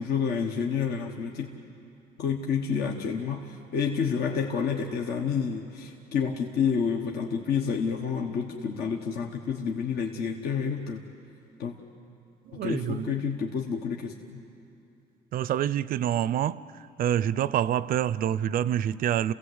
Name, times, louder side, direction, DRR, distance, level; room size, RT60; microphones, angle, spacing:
voice 1, 0.0-1.5 2.2-11.0 11.6-11.7 12.5-14.4, left 6 dB, 65° left, 2 dB, 1.4 m, -29 dB
voice 2, 12.5-13.1 15.3-16.6 17.0-19.3, right 10 dB, 60° right, 18 dB, 0.5 m, -26 dB
28.5 x 17.0 x 8.0 m, 2.7 s
cardioid pair, 110°, 17 cm